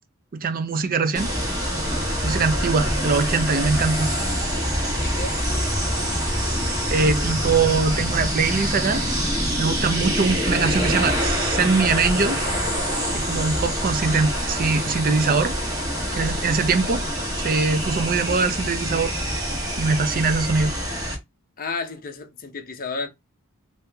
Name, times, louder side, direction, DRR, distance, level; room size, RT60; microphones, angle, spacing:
voice 1, 0.3-1.3 2.2-4.1 6.2-6.4 6.9-9.0 9.6-12.4 13.1-15.5 16.1-17.0 17.3-19.1 19.8-20.7, right 4 dB, 40° right, 0.5 m, -22 dB
sound 1, 1.1-21.1, equal, 15° right, 1.4 m, -25 dB
voice 2, 5.0-5.4 21.6-23.1, left 4 dB, 40° left, 0.7 m, -32 dB
3.0 x 2.8 x 3.3 m
head